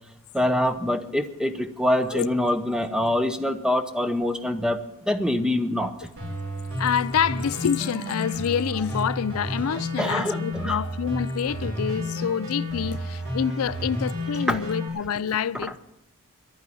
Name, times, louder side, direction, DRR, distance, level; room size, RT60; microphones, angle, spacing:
voice 1, 0.3-5.9 10.0-10.8 14.5-14.6, left 1 dB, 5° right, 0.8 m, -25 dB
sound 1, 6.2-14.9, equal, 65° right, 5.3 m, -31 dB
voice 2, 6.8-15.8, left 8 dB, 75° left, 0.4 m, -27 dB
11.5 x 9.1 x 9.8 m
head